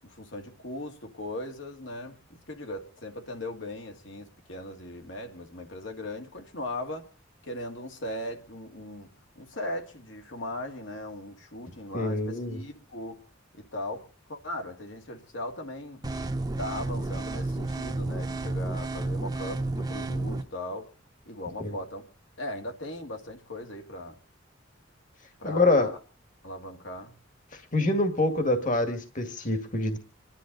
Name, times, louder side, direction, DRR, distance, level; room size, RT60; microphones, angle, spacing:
voice 1, 0.0-7.1 7.4-9.1 9.4-13.2 13.5-16.0 16.6-20.9 21.3-22.0 22.4-24.2 25.4-26.0 26.4-27.1, left 1 dB, 70° left, 2.1 m, -38 dB
voice 2, 11.9-12.6 21.6-21.8 25.4-25.9 27.7-30.0, left 2 dB, 40° left, 1.9 m, -25 dB
sound 1, 16.0-20.4, right 2 dB, 20° right, 1.0 m, -31 dB
27.0 x 11.5 x 4.0 m
head